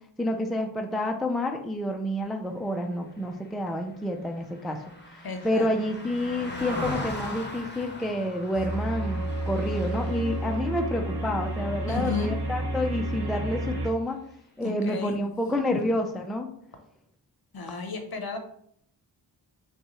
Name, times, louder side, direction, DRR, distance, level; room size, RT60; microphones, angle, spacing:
voice 1, 0.2-4.8 5.4-14.2 14.6-16.5, left 1 dB, ahead, 3 dB, 0.4 m, -29 dB
Car passing by, 3.2-12.7 13.1-13.3, left 2 dB, 25° left, 1.0 m, -40 dB
voice 2, 5.2-5.7 11.9-12.3 14.6-15.2 15.7-15.8 17.5-18.4, left 4 dB, 50° left, 5 dB, 0.8 m, -33 dB
sound 1, 8.5-13.9, right 1 dB, 55° right, 1.0 m, -30 dB
5.2 x 2.4 x 3.0 m, 0.69 s
cardioid pair, 45°, 47 cm